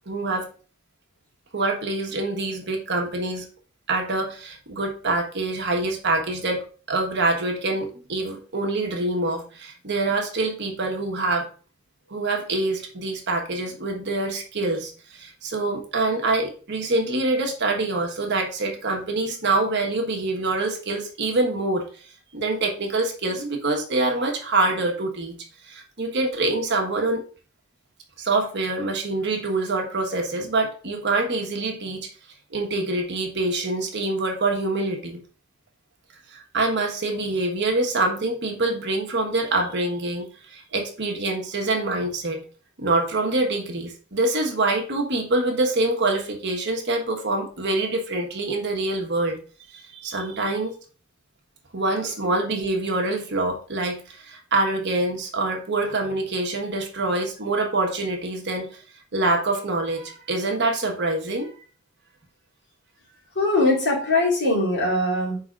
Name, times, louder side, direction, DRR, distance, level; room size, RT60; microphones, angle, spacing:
voice 1, 0.1-0.5 1.5-3.4 3.9-6.6 6.9-11.5 12.1-21.8 22.3-25.4 25.6-27.2 28.2-32.0 32.5-35.2 36.3-42.4 42.8-49.4 49.7-50.8 51.7-58.7 59.1-61.5, right 2 dB, 55° right, 2 dB, 1.3 m, -25 dB
voice 2, 63.3-65.4, left 2 dB, 55° left, -4 dB, 2.9 m, -21 dB
4.9 x 4.0 x 5.1 m, 0.39 s
head